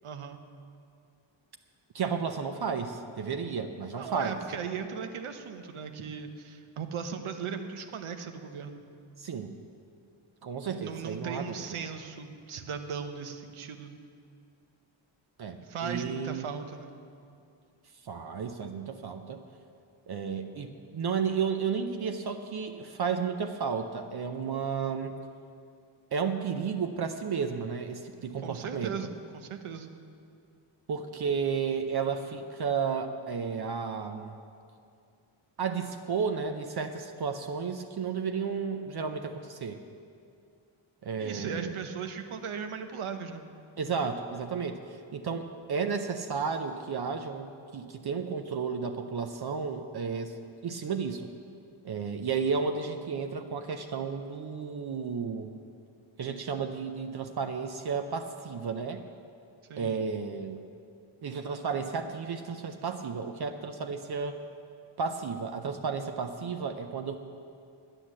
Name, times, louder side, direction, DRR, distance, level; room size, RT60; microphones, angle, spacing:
voice 1, 0.0-0.4 4.0-8.8 10.6-14.0 15.6-16.9 28.4-29.9 41.2-43.4 59.7-60.0, right 6 dB, 85° right, 7 dB, 1.0 m, -38 dB
voice 2, 1.9-4.4 9.2-9.5 10.4-11.6 15.4-16.5 18.0-19.4 20.1-25.1 26.1-28.9 30.9-34.4 35.6-39.8 41.0-41.7 43.8-44.8 45.1-51.3 51.8-55.5 56.2-59.0 59.8-60.6 61.2-64.4 65.0-67.2, right 6 dB, 50° right, 6 dB, 0.6 m, -32 dB
10.0 x 9.9 x 7.5 m, 2.4 s
wide cardioid pair, 150°, 49 cm